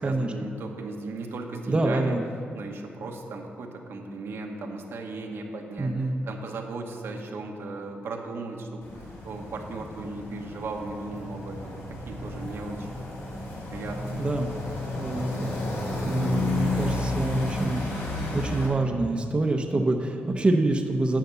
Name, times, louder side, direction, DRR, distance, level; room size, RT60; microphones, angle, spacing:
voice 1, 0.0-2.2 2.5-12.9 13.7-14.3, right 3 dB, 75° right, 2 dB, 1.2 m, -36 dB
voice 2, 1.7-2.2 5.8-6.2 14.2-14.5 15.0-17.8 18.3-21.2, right 2 dB, 25° right, 3 dB, 0.7 m, -26 dB
sound 1, 8.8-18.7, left 2 dB, 85° left, 2.7 m, -32 dB
10.5 x 5.9 x 6.8 m, 2.5 s
wide cardioid pair, 115°, 4 cm